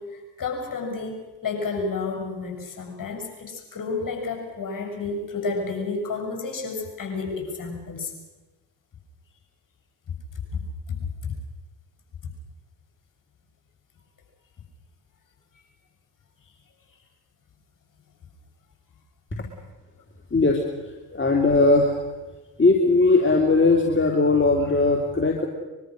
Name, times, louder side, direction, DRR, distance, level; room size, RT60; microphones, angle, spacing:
voice 1, 0.0-8.1 10.5-10.6 10.9-11.3, left 4 dB, 40° left, 3 dB, 7.2 m, -31 dB
voice 2, 20.3-22.0 22.6-25.5, left 3 dB, 25° left, 2 dB, 3.0 m, -19 dB
24.0 x 22.0 x 6.4 m, 1.2 s
hypercardioid pair, 45°, 47 cm